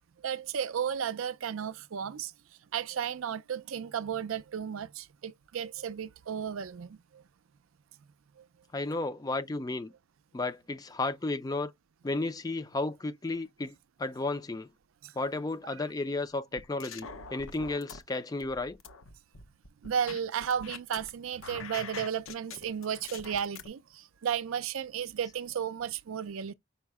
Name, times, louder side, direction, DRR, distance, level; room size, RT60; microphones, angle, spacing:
voice 1, 0.2-2.3 2.7-7.2 15.0-15.1 19.8-26.5, right 8 dB, 90° right, 0.4 m, -34 dB
voice 2, 8.7-9.9 10.3-11.7 12.0-14.7 15.2-18.8, left 2 dB, 20° left, 0.4 m, -33 dB
sound 1, 16.6-18.0 18.4-21.1 21.4-23.7, left 5 dB, 90° left, 0.8 m, -44 dB
5.5 x 2.0 x 4.6 m
head